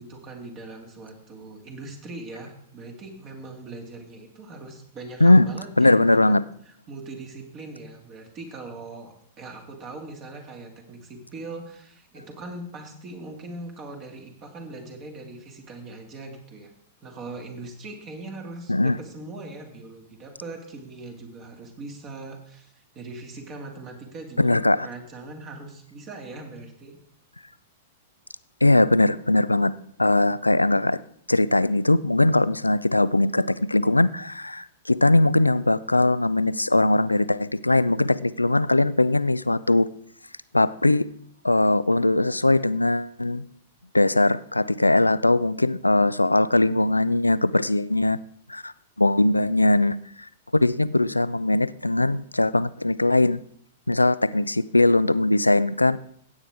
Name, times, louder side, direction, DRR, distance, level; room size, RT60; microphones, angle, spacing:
voice 1, 0.0-6.4 6.7-16.7 17.0-27.0, right 2 dB, 30° right, 3 dB, 2.5 m, -40 dB
voice 2, 5.8-6.4 18.7-19.0 24.4-24.9 28.6-31.0 31.3-39.9 40.5-41.1 41.4-43.4 43.9-48.2 48.5-48.7 49.0-53.4 53.9-56.0, left 2 dB, 90° left, 17 dB, 0.4 m, -20 dB
16.0 x 8.8 x 3.7 m, 0.66 s
figure-of-eight pair, 100°, 0 cm